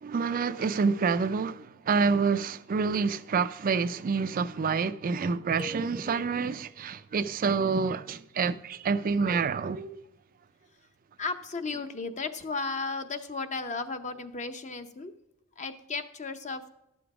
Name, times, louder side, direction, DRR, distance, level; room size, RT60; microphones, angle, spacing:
voice 1, 0.0-10.0, right 5 dB, 40° right, 0.4 m, -28 dB
sound 1, 5.6-6.7, left 2 dB, 5° right, 0.7 m, -44 dB
voice 2, 11.2-15.1 15.6-16.7, left 4 dB, 35° left, 0.7 m, -34 dB
12.0 x 7.0 x 4.8 m
head